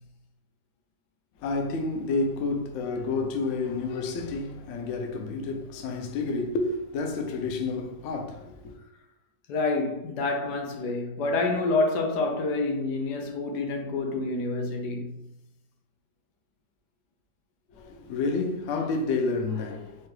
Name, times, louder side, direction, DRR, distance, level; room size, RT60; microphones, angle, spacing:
voice 1, 1.4-8.7 17.7-20.1, left 3 dB, 65° left, 0.8 m, -30 dB
voice 2, 9.5-15.1, left 3 dB, 85° left, 1.2 m, -28 dB
4.5 x 2.2 x 3.1 m
omnidirectional pair, 1.8 m